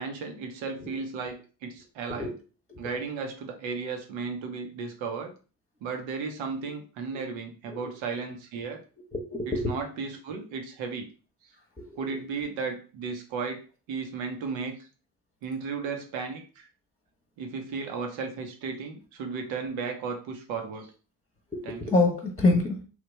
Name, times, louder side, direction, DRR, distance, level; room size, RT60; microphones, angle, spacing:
voice 1, 0.0-2.4 2.8-5.3 5.8-8.8 9.5-11.1 12.0-13.6 13.9-14.8 15.4-16.7 17.4-20.9 21.6-21.9, right 5 dB, 80° right, 4 dB, 0.9 m, -34 dB
voice 2, 9.1-9.7 12.1-12.2 21.5-22.8, left 2 dB, 15° left, 1 dB, 1.0 m, -26 dB
3.2 x 2.4 x 3.2 m, 0.35 s
hypercardioid pair, 50°, 46 cm